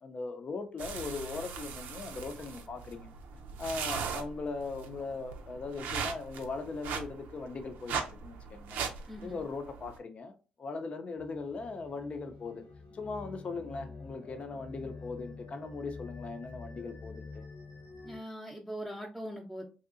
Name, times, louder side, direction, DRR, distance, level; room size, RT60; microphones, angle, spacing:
voice 1, 0.0-3.1 3.6-8.9 9.2-12.6 12.9-17.5, left 4 dB, 45° left, 0.6 m, -39 dB
sound 1, 0.8-10.0, right 6 dB, 80° right, 0.5 m, -39 dB
voice 2, 9.1-9.4 18.0-19.6, equal, ahead, 0.7 m, -41 dB
sound 2, 11.2-18.2, left 3 dB, 90° left, 1.0 m, -47 dB
3.1 x 2.7 x 2.5 m
supercardioid pair, 70°, 3 cm